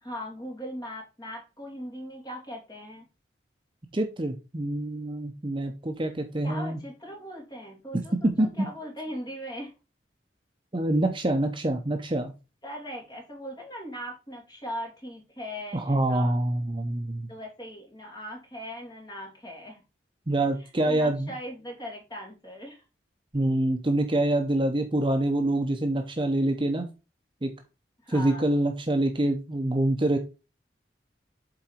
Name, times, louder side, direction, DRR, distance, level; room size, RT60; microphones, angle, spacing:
voice 1, 0.0-3.1 6.4-9.7 12.6-16.3 17.3-19.8 20.6-22.8 28.0-28.5, equal, 20° left, 0 dB, 2.5 m, -39 dB
voice 2, 3.9-6.8 8.2-8.7 10.7-12.3 15.7-17.3 20.3-21.3 23.3-26.9 27.4-27.5 28.1-30.2, right 1 dB, 25° right, 5 dB, 0.7 m, -26 dB
7.7 x 3.9 x 4.4 m, 0.29 s
head